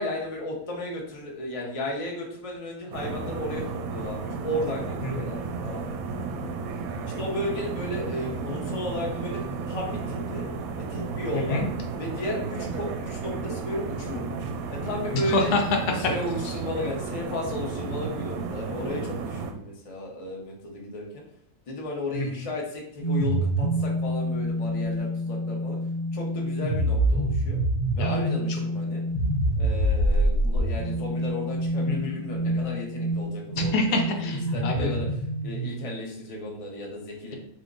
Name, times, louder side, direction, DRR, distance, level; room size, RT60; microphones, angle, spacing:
voice 1, 0.0-5.8 7.2-9.4 9.7-10.4 10.9-11.6 12.0-14.2 14.8-15.5 16.1-21.0 21.7-25.8 26.1-27.6 27.9-29.0 29.6-34.0 34.5-35.0 35.4-37.3, left 1 dB, 30° left, -1 dB, 0.7 m, -34 dB
sound 1, 2.9-19.5, right 4 dB, 70° right, 1.0 m, -33 dB
voice 2, 5.0-5.3 11.3-11.7 15.1-16.1 16.4-16.5 22.1-22.5 28.0-28.2 31.9-32.2 33.5-35.0, left 3 dB, 85° left, 3 dB, 1.3 m, -27 dB
sound 2, 23.0-35.8, right 1 dB, 60° left, 1.2 m, -26 dB
3.7 x 2.8 x 3.8 m, 0.71 s
omnidirectional pair, 1.6 m